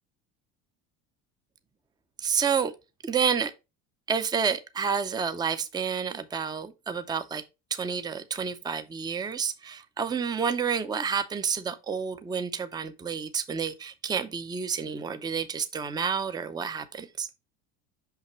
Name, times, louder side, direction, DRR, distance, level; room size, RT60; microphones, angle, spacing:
voice 1, 2.2-2.7 3.0-3.5 4.1-7.4 7.7-17.3, right 6 dB, 10° right, 0.6 m, -29 dB
5.8 x 5.7 x 3.0 m
supercardioid pair, 120°, 38 cm